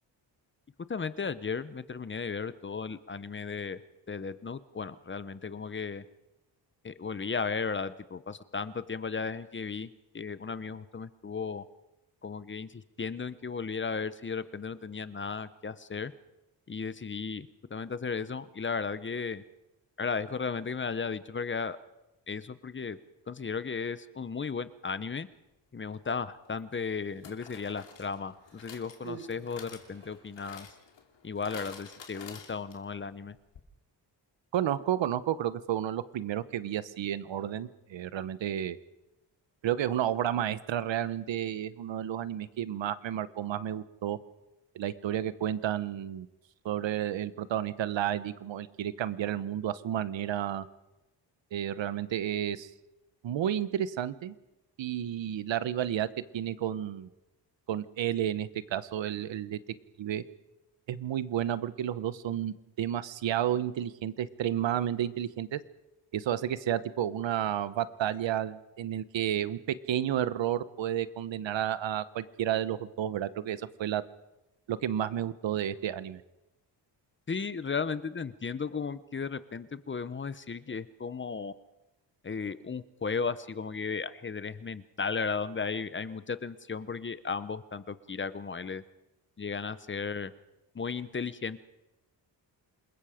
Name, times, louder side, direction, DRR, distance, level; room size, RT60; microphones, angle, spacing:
voice 1, 0.9-3.8 4.1-6.0 6.8-9.9 10.1-11.6 12.2-16.1 16.7-19.4 20.0-21.8 22.3-23.0 23.3-25.3 25.7-30.7 31.2-33.4 77.3-81.5 82.2-88.8 89.4-90.3 90.7-91.6, left 5 dB, 25° left, 15 dB, 0.8 m, -35 dB
sound 1, 25.9-26.1 27.2-33.0 33.3-33.4 33.6-33.7, left 6 dB, 80° left, 2.7 m, -50 dB
Human voice, 26.6-27.5 28.4-30.3 31.2-31.4, right 4 dB, 65° right, 6.1 m, -49 dB
voice 2, 34.5-38.8 39.6-44.2 44.7-46.3 46.6-50.6 51.5-52.7 53.2-54.3 54.8-56.1 56.3-57.1 57.7-59.6 60.0-60.2 60.9-65.6 66.1-69.6 69.9-74.0 74.7-76.2, right 11 dB, 90° right, 15 dB, 1.0 m, -31 dB
27.5 x 21.5 x 5.0 m, 0.97 s
wide cardioid pair, 130°, 43 cm